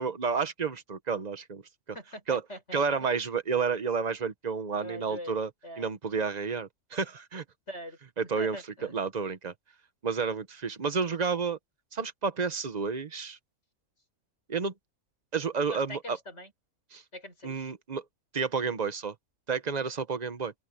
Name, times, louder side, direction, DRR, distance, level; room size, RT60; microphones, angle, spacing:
voice 1, 0.0-1.6 2.3-2.4 2.7-5.5 5.8-7.4 8.2-8.6 8.9-9.5 10.0-11.6 11.9-13.4 14.5-14.7 15.3-16.2 16.9-17.0 17.4-18.0 18.3-19.1 19.5-20.5, right 5 dB, 30° right, 1.0 m, -30 dB
voice 2, 1.9-3.1 4.8-5.4 5.6-5.9 7.7-8.0 8.4-8.9 15.7-16.5 17.1-17.7, equal, 50° left, 7.8 m, -43 dB
open air
omnidirectional pair, 1.5 m